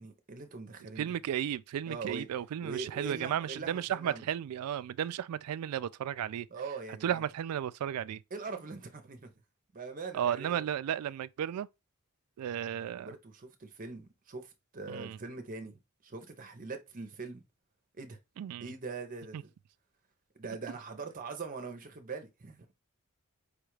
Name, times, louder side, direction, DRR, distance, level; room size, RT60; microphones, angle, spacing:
voice 1, 0.0-1.2 1.9-2.3 2.6-4.3 6.5-7.2 8.3-9.3 9.7-10.7 13.0-17.4 17.9-18.2 18.6-19.5 20.4-22.7, right 4 dB, 40° right, 0.6 m, -42 dB
voice 2, 1.0-6.5 7.0-8.2 10.1-11.7 12.4-13.1 14.9-15.2 18.4-18.7 19.3-19.4, right 10 dB, 90° right, 0.3 m, -34 dB
5.0 x 2.4 x 3.1 m
head